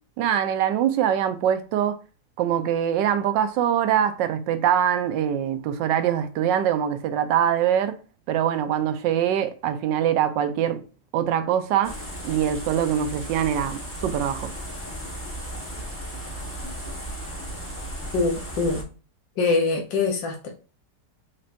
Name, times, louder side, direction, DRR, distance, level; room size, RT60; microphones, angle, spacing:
voice 1, 0.2-2.0 2.4-8.0 8.3-10.8 11.1-11.9 12.2-14.5, right 9 dB, 80° right, 1.3 m, -23 dB
sound 1, 11.8-18.8, right 1 dB, 10° left, 1.0 m, -35 dB
voice 2, 18.1-18.8 19.4-20.5, left 3 dB, 80° left, 1.6 m, -24 dB
4.3 x 4.2 x 2.5 m
omnidirectional pair, 2.0 m